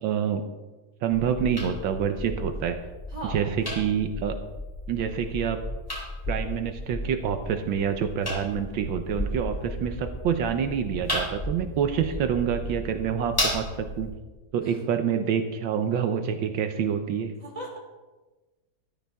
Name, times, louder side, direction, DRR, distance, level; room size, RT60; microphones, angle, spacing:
voice 1, 0.0-0.4 1.0-2.8 3.2-3.5 3.8-4.3 4.9-5.6 6.3-14.1 14.5-17.3, right 8 dB, 80° right, 7 dB, 1.6 m, -27 dB
sound 1, 1.1-14.1, left 1 dB, 10° left, 4.1 m, -34 dB
voice 2, 3.1-3.4 12.1-12.2 14.6-14.8 17.4-17.8, right 1 dB, 20° right, -1 dB, 3.4 m, -37 dB
14.0 x 13.5 x 3.5 m, 1.2 s
omnidirectional pair, 2.1 m